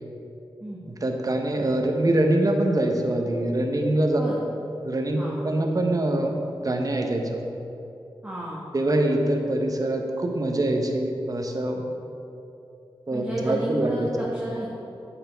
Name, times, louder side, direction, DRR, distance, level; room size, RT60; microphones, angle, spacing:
voice 1, 1.0-4.2 4.8-7.5 8.7-11.8 13.1-14.1, right 1 dB, 40° right, 3 dB, 0.8 m, -24 dB
voice 2, 8.2-8.6 13.1-14.7, right 1 dB, 15° right, -6 dB, 1.2 m, -32 dB
8.7 x 5.8 x 3.4 m, 2.9 s
cardioid pair, 55°, 9 cm